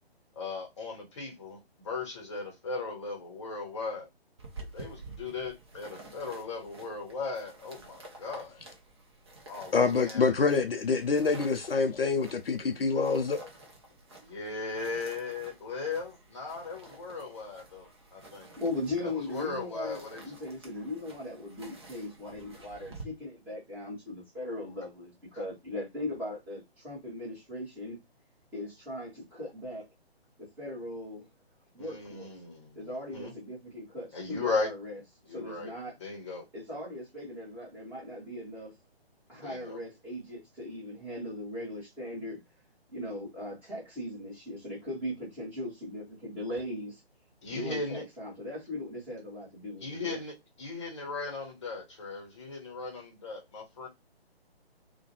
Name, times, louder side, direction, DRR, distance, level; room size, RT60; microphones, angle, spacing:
voice 1, 0.4-4.1 4.7-8.6 9.5-10.2 11.2-11.3 14.2-18.5 19.0-20.3 31.8-33.3 34.1-34.7 35.3-35.7 36.0-36.5 39.4-39.8 47.4-48.0 49.8-53.9, left 3 dB, 30° left, 0.8 m, -37 dB
sound 1, 4.4-23.0, right 2 dB, 25° right, 0.5 m, -51 dB
voice 2, 9.7-13.5, left 4 dB, 65° left, 0.5 m, -26 dB
voice 3, 18.6-28.0 28.5-29.9 30.4-31.3 31.7-32.3 32.7-35.0 35.3-35.9 36.5-38.7 39.3-42.4 42.9-47.0 47.5-50.2, left 1 dB, 5° right, 0.9 m, -39 dB
2.4 x 2.2 x 2.7 m
figure-of-eight pair, 140°, 32 cm